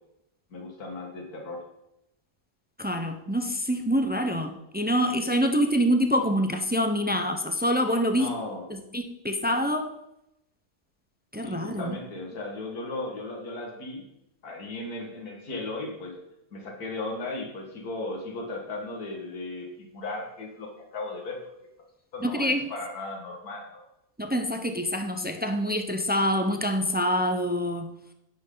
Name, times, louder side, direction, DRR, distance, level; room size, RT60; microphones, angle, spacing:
voice 1, 0.5-1.6 8.1-8.7 11.4-14.0 14.4-16.2 16.5-21.4 22.1-23.8, left 2 dB, 70° left, 1 dB, 2.4 m, -36 dB
voice 2, 2.8-8.3 8.9-9.9 11.3-12.0 22.2-22.7 24.2-27.9, equal, 10° right, 6 dB, 0.4 m, -26 dB
11.5 x 9.8 x 4.0 m, 0.85 s
omnidirectional pair, 1.7 m